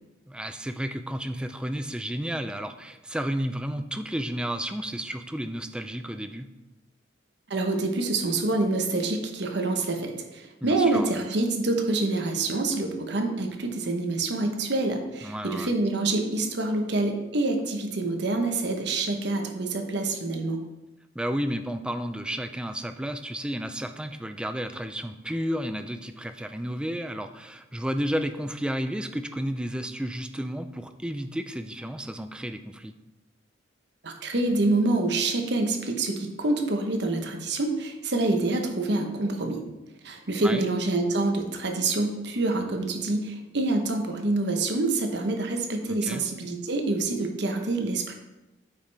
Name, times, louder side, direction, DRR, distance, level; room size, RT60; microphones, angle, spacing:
voice 1, 0.3-6.5 10.6-11.1 15.2-15.7 21.2-32.9 40.4-40.6 45.9-46.2, equal, 5° right, 8 dB, 0.3 m, -32 dB
voice 2, 7.5-20.6 34.0-39.6 40.0-48.2, right 2 dB, 60° right, 4 dB, 0.9 m, -26 dB
8.7 x 5.3 x 3.4 m, 1.0 s
head